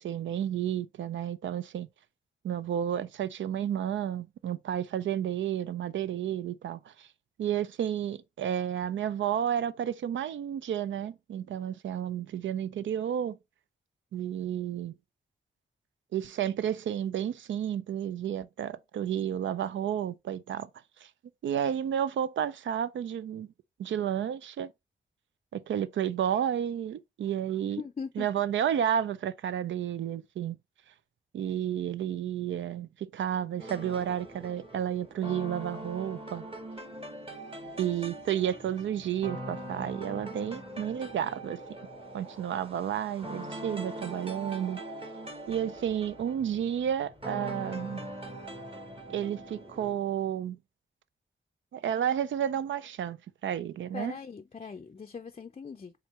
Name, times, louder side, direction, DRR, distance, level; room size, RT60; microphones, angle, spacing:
voice 1, 0.0-1.9 2.4-7.1 7.4-13.4 14.1-14.9 16.1-20.7 21.0-21.1 21.4-23.5 23.8-24.7 25.5-27.8 28.2-30.6 31.3-36.4 37.8-41.8 42.1-44.8 45.5-48.1 49.1-50.6 51.7-54.1, right 9 dB, 80° right, 0.4 m, -31 dB
voice 2, 27.6-28.3 53.9-55.9, left 5 dB, 35° left, 0.4 m, -40 dB
sound 1, 33.6-49.9, right 1 dB, 30° right, 1.5 m, -42 dB
4.4 x 3.6 x 3.2 m
cardioid pair, 55°, 19 cm